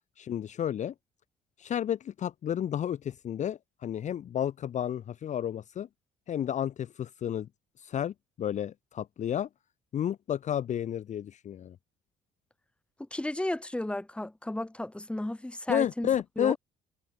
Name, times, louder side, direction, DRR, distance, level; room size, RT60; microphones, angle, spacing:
voice 1, 0.2-0.9 1.6-5.9 6.3-7.5 7.8-9.5 9.9-11.8 15.7-16.6, left 10 dB, 45° left, 0.8 m, -31 dB
voice 2, 13.1-16.1 16.4-16.6, left 1 dB, 5° left, 2.4 m, -33 dB
cardioid pair, 110°, 17 cm